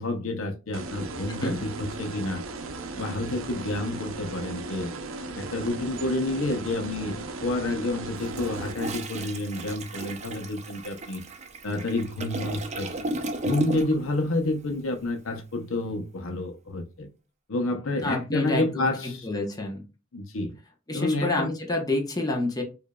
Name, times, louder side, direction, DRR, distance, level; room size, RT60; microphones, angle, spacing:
voice 1, 0.0-2.4 3.0-4.9 5.3-11.2 11.6-12.9 13.4-17.1 17.5-19.3 20.1-20.6 20.9-21.5, left 2 dB, 85° left, 0.8 m, -29 dB
sound 1, 0.7-8.7, right 3 dB, 80° right, 0.6 m, -37 dB
Toilet flush, 8.2-14.1 14.4-14.7, right 1 dB, 35° right, 0.6 m, -34 dB
voice 2, 18.0-19.8 20.9-22.6, left 2 dB, 20° left, 0.9 m, -28 dB
5.1 x 2.6 x 2.3 m
head